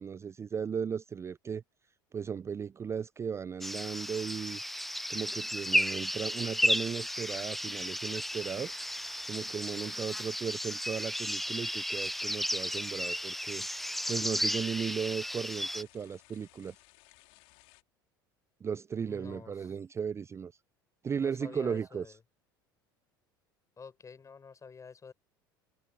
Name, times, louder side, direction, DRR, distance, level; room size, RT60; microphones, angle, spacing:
voice 1, 0.0-1.6 2.1-4.6 5.1-8.7 9.3-13.7 14.1-16.7 18.6-20.5 21.0-22.2, right 7 dB, 25° right, 0.4 m, -36 dB
sound 1, 3.6-15.8, equal, ahead, 0.8 m, -33 dB
sound 2, 6.8-17.8, left 29 dB, 65° left, 3.9 m, -60 dB
voice 2, 19.1-19.8 21.2-22.2 23.8-25.1, left 5 dB, 25° left, 6.8 m, -49 dB
hypercardioid pair, 75°, 11 cm